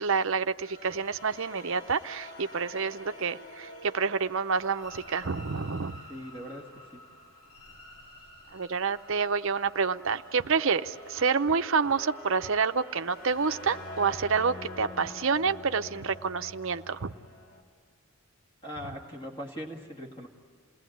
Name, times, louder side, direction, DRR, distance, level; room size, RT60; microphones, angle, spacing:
voice 1, 0.0-6.0 8.5-17.1, right 5 dB, 60° right, 10 dB, 0.7 m, -28 dB
sound 1, 0.6-17.6, left 1 dB, 60° left, 4.2 m, -47 dB
voice 2, 6.1-7.0 18.6-20.3, equal, 20° left, 0 dB, 2.0 m, -40 dB
28.5 x 19.5 x 9.2 m, 2.2 s
head